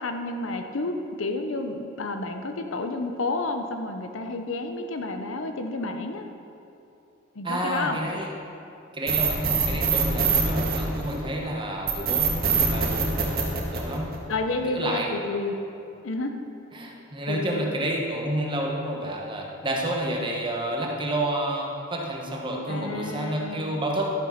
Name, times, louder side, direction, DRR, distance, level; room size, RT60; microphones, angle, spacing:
voice 1, 0.0-6.2 7.3-8.0 14.3-15.5 16.0-16.3 17.3-17.7 22.7-23.6, left 2 dB, 85° left, 5 dB, 0.8 m, -30 dB
voice 2, 7.4-8.3 8.9-13.4 13.7-14.2 14.7-15.1 16.7-24.1, right 1 dB, 25° right, -1 dB, 1.3 m, -30 dB
sound 1, 9.1-11.3 11.9-14.3, right 6 dB, 50° right, 1.7 m, -23 dB
12.0 x 6.7 x 5.8 m, 2.7 s
head